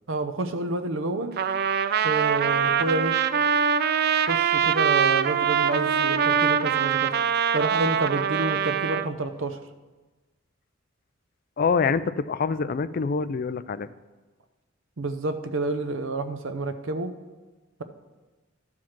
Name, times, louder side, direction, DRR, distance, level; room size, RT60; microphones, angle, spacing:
voice 1, 0.1-1.3 2.0-3.1 4.3-7.1 7.5-9.6 15.0-17.1, right 2 dB, 85° right, 9 dB, 0.7 m, -29 dB
Trumpet, 1.4-9.1, right 7 dB, 55° right, 0.4 m, -23 dB
voice 2, 11.6-13.9, left 5 dB, 50° left, 14 dB, 0.4 m, -25 dB
12.0 x 4.8 x 5.9 m, 1.2 s
head